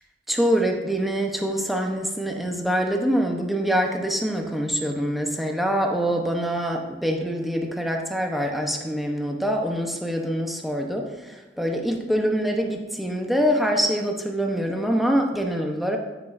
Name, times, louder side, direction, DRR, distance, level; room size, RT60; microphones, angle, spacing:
voice 1, 0.3-16.0, equal, ahead, 1 dB, 0.9 m, -25 dB
13.0 x 6.2 x 2.6 m, 1.2 s
head